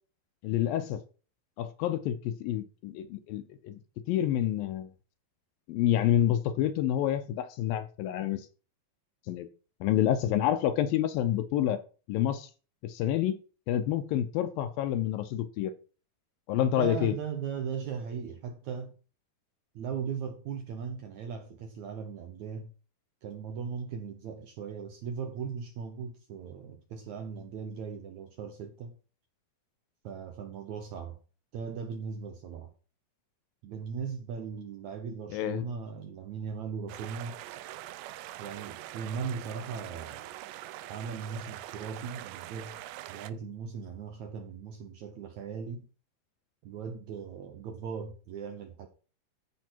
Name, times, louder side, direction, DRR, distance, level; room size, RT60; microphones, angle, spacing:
voice 1, 0.4-1.0 1.6-3.8 4.1-4.9 5.7-8.4 9.3-9.5 9.8-11.8 12.1-12.5 12.8-13.4 13.7-15.7 16.5-17.1 35.3-35.7, left 11 dB, 75° left, 2.3 m, -28 dB
voice 2, 16.7-18.9 19.8-22.7 23.2-29.0 30.0-31.2 31.5-32.7 33.6-37.4 38.4-40.3 40.9-42.8 43.1-45.9 46.6-48.9, right 6 dB, 70° right, 1.8 m, -38 dB
sound 1, 36.9-43.3, right 14 dB, 85° right, 1.9 m, -43 dB
14.5 x 5.7 x 4.5 m
omnidirectional pair, 4.5 m